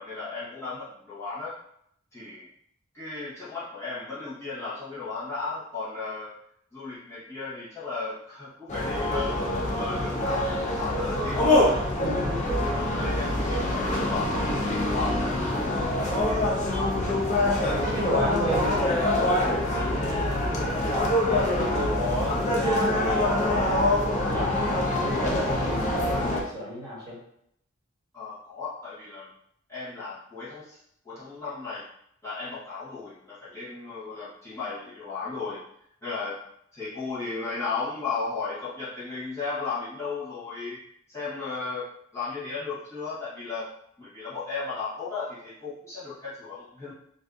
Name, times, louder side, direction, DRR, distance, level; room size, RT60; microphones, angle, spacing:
voice 1, 0.0-1.6 2.1-2.5 2.9-6.3 6.7-11.5 12.1-17.3 28.1-29.3 29.7-30.8 31.0-31.8 32.2-35.6 36.0-36.4 36.7-40.8 41.1-43.7 44.0-46.9, left 4 dB, 15° left, -13 dB, 1.0 m, -35 dB
sound 1, 8.7-26.4, left 1 dB, 35° left, 0.5 m, -25 dB
voice 2, 12.0-12.4 17.8-23.9 24.2-27.2, equal, 20° right, -8 dB, 1.4 m, -32 dB
2.6 x 2.5 x 3.4 m, 0.71 s
head